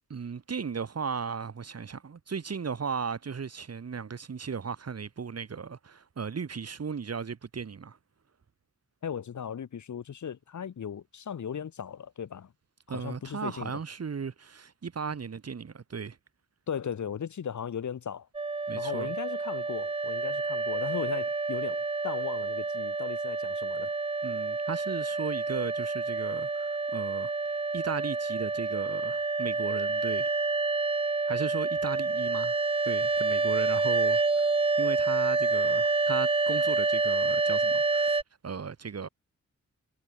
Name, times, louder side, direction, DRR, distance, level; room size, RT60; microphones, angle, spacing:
voice 1, 0.1-8.0 12.9-16.2 18.7-19.1 24.2-30.3 31.3-34.5 34.8-39.1, right 6 dB, 50° right, 2.0 m, -36 dB
voice 2, 9.0-12.5 12.9-13.7 16.7-18.3 18.7-23.9, left 8 dB, 65° left, 1.1 m, -37 dB
sound 1, 18.3-38.2, right 3 dB, 20° right, 0.5 m, -28 dB
wide cardioid pair, 170°, 32 cm